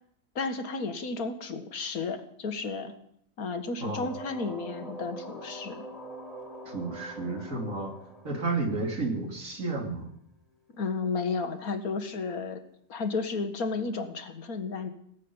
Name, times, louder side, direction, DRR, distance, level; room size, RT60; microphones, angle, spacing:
voice 1, 0.4-2.9 3.4-5.9 10.8-12.6 12.9-14.9, left 4 dB, 85° left, 9 dB, 2.0 m, -32 dB
sound 1, 3.8-9.6, right 1 dB, ahead, 3.5 m, -44 dB
voice 2, 3.8-4.1 6.6-7.9 8.2-10.1, right 3 dB, 65° right, 2 dB, 3.4 m, -32 dB
18.0 x 7.6 x 9.6 m, 0.70 s
omnidirectional pair, 1.5 m